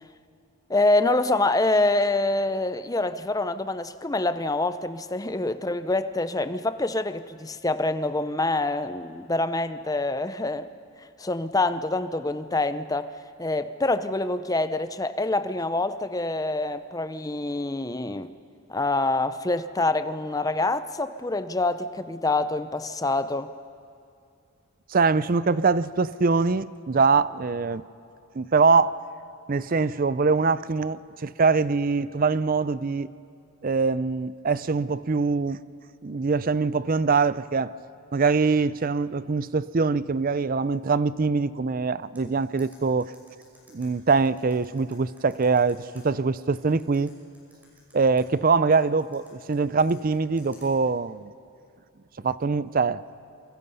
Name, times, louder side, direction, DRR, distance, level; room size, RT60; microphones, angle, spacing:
voice 1, 0.7-10.7 11.0-13.1 13.4-18.3 18.7-23.5, left 2 dB, 15° left, 12 dB, 0.6 m, -26 dB
voice 2, 24.9-27.8 28.3-28.9 29.5-33.1 33.6-35.6 36.0-37.7 38.1-43.1 43.7-47.1 47.9-51.3 52.2-53.0, right 4 dB, 40° right, 17 dB, 0.5 m, -23 dB
sound 1, 42.2-46.0 46.5-48.2 48.7-50.7, equal, 5° right, 6.2 m, -56 dB
28.0 x 23.5 x 5.5 m, 2.5 s
head